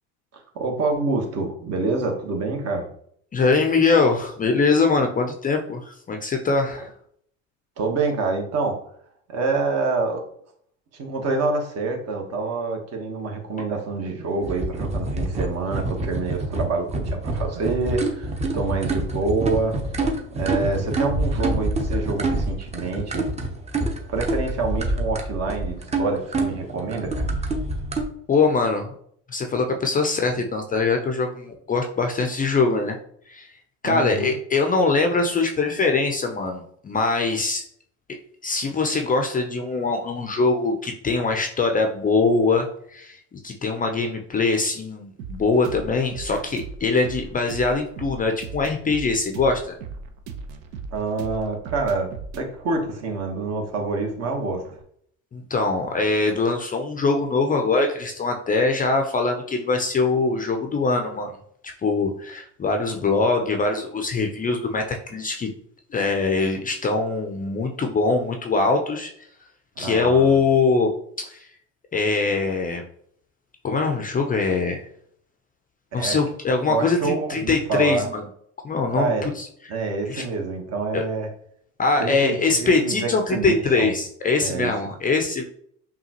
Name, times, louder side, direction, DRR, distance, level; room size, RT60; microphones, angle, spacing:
voice 1, 0.5-2.9 7.8-8.8 9.3-10.2 10.9-19.8 20.3-23.3 24.1-27.3 33.8-34.3 50.9-52.1 52.3-54.6 69.8-70.4 75.9-76.2 76.7-78.1 78.9-79.2 79.7-81.3 82.0-83.9 84.4-84.7, right 3 dB, 40° right, 2 dB, 1.2 m, -26 dB
voice 2, 3.3-6.9 28.3-28.9 29.3-33.0 33.3-33.5 33.8-37.6 38.4-49.8 55.3-61.4 61.6-65.5 65.9-69.3 69.8-70.9 71.2-71.5 71.9-72.8 73.6-74.9 75.9-78.2 78.6-79.5 80.1-80.2 80.9-81.0 81.8-85.4, left 3 dB, 20° left, 4 dB, 0.5 m, -22 dB
sound 1, 14.4-28.0, right 2 dB, 20° right, 0.8 m, -26 dB
sound 2, 45.2-54.8, right 4 dB, 60° right, 0.8 m, -38 dB
5.5 x 2.3 x 2.9 m, 0.65 s
hypercardioid pair, 85°, 37 cm